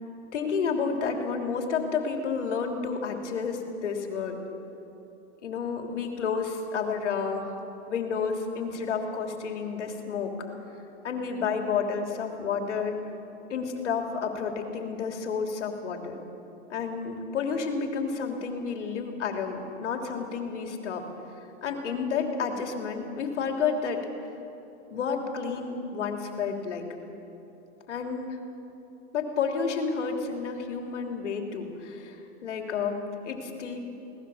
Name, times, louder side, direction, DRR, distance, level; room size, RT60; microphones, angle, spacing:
voice 1, 0.3-4.4 5.4-10.3 11.0-13.0 13.5-16.2 16.7-21.1 21.6-24.0 24.9-26.9 27.9-28.4 29.1-33.8, left 5 dB, 85° left, 3 dB, 3.3 m, -30 dB
22.5 x 19.0 x 7.2 m, 3.0 s
hypercardioid pair, 135°, 35 cm